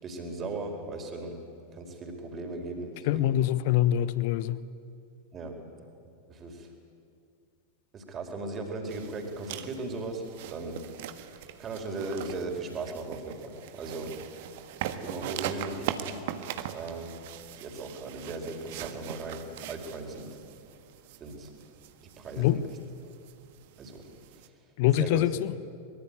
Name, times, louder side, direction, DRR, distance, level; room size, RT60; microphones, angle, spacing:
voice 1, 0.0-1.4 1.7-3.3 5.3-5.5 6.3-6.7 7.9-10.8 11.3-14.1 15.0-16.2 16.7-17.2 17.6-20.3 21.2-21.5 22.2-22.8 23.8-24.0 24.9-25.3, right 3 dB, 25° right, 3 dB, 4.6 m, -37 dB
voice 2, 3.1-4.6 22.4-22.6 24.8-25.5, left 13 dB, 50° left, 16 dB, 1.0 m, -24 dB
sound 1, 8.9-24.5, right 11 dB, 50° right, 1.5 m, -41 dB
24.5 x 22.5 x 8.9 m, 2.4 s
figure-of-eight pair, 90°, 0 cm